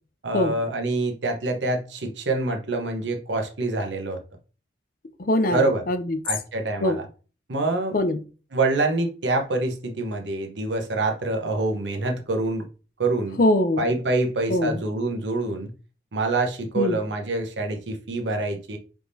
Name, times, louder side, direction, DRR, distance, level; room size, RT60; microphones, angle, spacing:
voice 1, 0.2-4.2 5.5-5.8 6.2-7.0 7.5-8.0 8.5-12.7 13.0-13.4 13.8-15.7 16.1-18.8, right 2 dB, 90° right, 0.9 m, -26 dB
voice 2, 5.2-6.2 6.8-7.0 7.9-8.2 13.4-13.9 14.5-14.8 16.8-17.0, left 1 dB, 50° left, 0.5 m, -22 dB
4.8 x 3.5 x 2.7 m
head